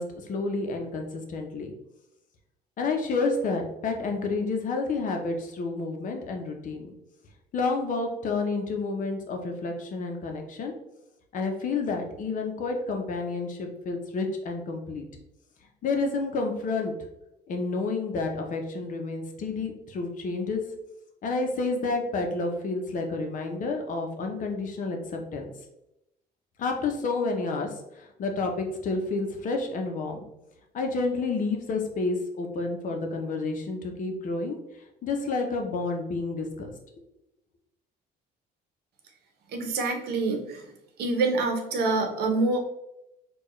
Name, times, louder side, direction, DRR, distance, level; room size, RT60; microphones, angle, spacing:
voice 1, 0.0-1.7 2.8-6.9 7.5-10.7 11.3-15.0 15.8-16.9 17.5-20.6 21.2-25.4 26.6-30.2 30.7-34.6 35.0-36.7, left 3 dB, 50° left, 3 dB, 0.8 m, -30 dB
voice 2, 39.5-40.7 41.0-42.6, right 3 dB, 75° right, 3 dB, 0.8 m, -26 dB
4.4 x 2.4 x 3.1 m, 0.86 s
cardioid pair, 110°, 17 cm